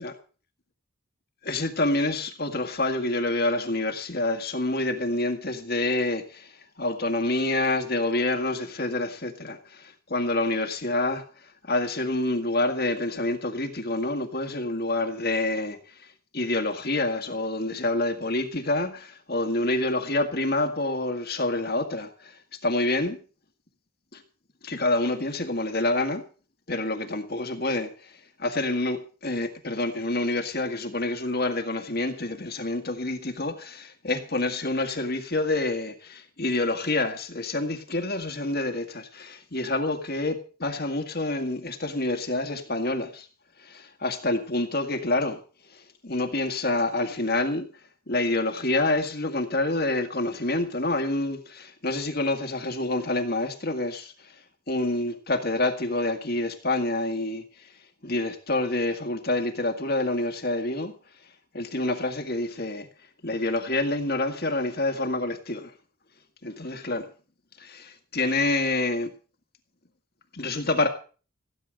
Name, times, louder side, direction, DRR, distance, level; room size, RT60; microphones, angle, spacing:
voice 1, 1.4-6.5 6.8-11.2 11.7-16.1 16.3-23.2 24.1-24.2 24.6-26.2 26.7-28.1 28.4-43.3 43.6-45.4 45.7-47.7 48.1-54.3 54.7-57.7 58.0-60.9 61.5-62.9 63.2-65.7 66.4-67.1 67.6-69.1 70.3-70.9, left 2 dB, 45° left, 1.8 m, -27 dB
17.0 x 9.9 x 6.5 m
head